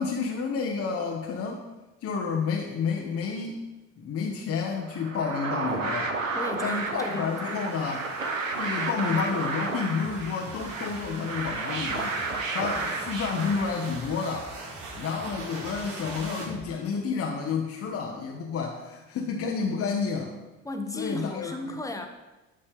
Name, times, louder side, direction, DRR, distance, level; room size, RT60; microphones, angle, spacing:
voice 1, 0.0-1.6 2.0-3.6 4.0-6.1 6.6-8.0 8.6-12.2 12.5-14.5 15.0-20.3 20.9-21.8, left 5 dB, 40° left, 1 dB, 0.9 m, -30 dB
sound 1, 4.9-14.3, right 3 dB, 90° right, 0.6 m, -32 dB
sound 2, 6.0-16.4, right 3 dB, 65° right, 2.7 m, -44 dB
voice 2, 6.3-7.6 20.6-22.1, left 2 dB, 10° left, 5 dB, 0.9 m, -35 dB
sound 3, 10.0-16.8, right 2 dB, 15° right, 1.0 m, -47 dB
12.0 x 4.3 x 3.5 m, 1.1 s
figure-of-eight pair, 55°, 38 cm